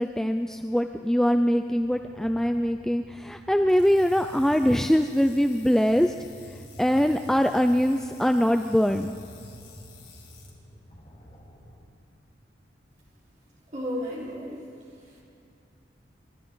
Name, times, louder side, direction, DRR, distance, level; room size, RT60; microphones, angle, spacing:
voice 1, 0.0-6.1 6.5-9.1, equal, 5° left, 6 dB, 0.3 m, -23 dB
sound 1, 1.8-11.8, equal, 40° left, 4.4 m, -48 dB
sound 2, 3.7-10.5, left 7 dB, 60° left, 3.1 m, -53 dB
voice 2, 13.7-14.6 15.0-15.2, equal, 40° right, -6 dB, 4.5 m, -34 dB
29.0 x 12.5 x 3.9 m, 2.4 s
head